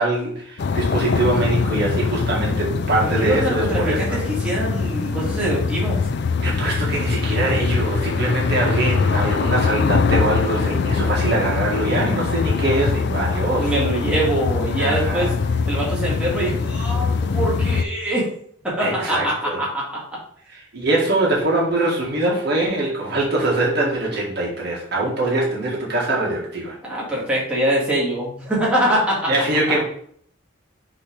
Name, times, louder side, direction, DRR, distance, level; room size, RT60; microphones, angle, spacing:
voice 1, 0.0-4.2 6.4-13.7 14.7-15.3 18.8-19.6 20.5-26.8 29.3-29.8, right 2 dB, 55° right, -3 dB, 1.9 m, -23 dB
sound 1, 0.6-17.8, left 4 dB, 55° left, 0.4 m, -22 dB
voice 2, 3.0-6.0 13.6-15.3 15.6-18.3 18.6-20.0 26.8-29.3, right 1 dB, 5° right, -7 dB, 2.0 m, -23 dB
6.1 x 3.3 x 5.1 m, 0.62 s
head